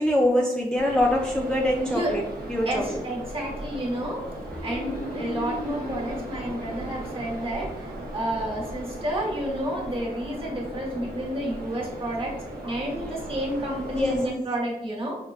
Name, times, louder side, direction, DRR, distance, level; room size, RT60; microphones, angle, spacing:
voice 1, 0.0-2.2 2.5-3.0 13.9-14.2, left 1 dB, 5° left, -2 dB, 0.4 m, -24 dB
sound 1, 0.7-14.3, right 1 dB, 85° right, 0.8 m, -37 dB
voice 2, 1.8-2.1 2.6-4.2 4.6-12.3 12.6-15.2, right 1 dB, 35° right, -3 dB, 1.4 m, -30 dB
Marimba xylophone, 4.5-7.3, left 1 dB, 75° left, 1.0 m, -37 dB
5.3 x 2.2 x 2.3 m, 0.86 s
wide cardioid pair, 70°, 15 cm